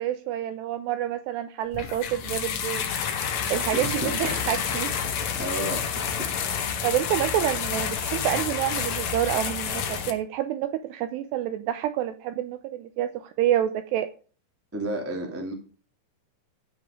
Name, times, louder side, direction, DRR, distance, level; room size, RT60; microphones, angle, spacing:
voice 1, 0.0-2.9 3.5-4.9 6.8-14.1, right 12 dB, 80° right, 11 dB, 2.4 m, -28 dB
sound 1, 1.7-10.1, left 7 dB, 75° left, 1.6 m, -29 dB
voice 2, 3.7-4.4 4.7-4.8 5.3-6.3 14.7-15.5, right 1 dB, 20° right, 2 dB, 0.3 m, -32 dB
16.0 x 5.4 x 5.1 m, 0.38 s
omnidirectional pair, 5.5 m